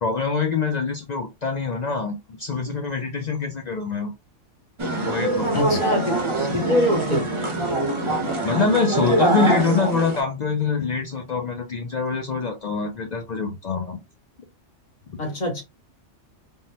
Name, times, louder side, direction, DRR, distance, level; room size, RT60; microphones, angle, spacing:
voice 1, 0.0-4.1 5.0-5.8 8.4-14.0, left 5 dB, 65° left, 4 dB, 0.4 m, -25 dB
sound 1, 4.8-10.2, right 2 dB, 30° right, 0.6 m, -24 dB
voice 2, 5.5-7.3 15.2-15.6, left 1 dB, 40° left, 2 dB, 0.9 m, -24 dB
3.5 x 2.1 x 2.7 m, 0.24 s
omnidirectional pair, 1.3 m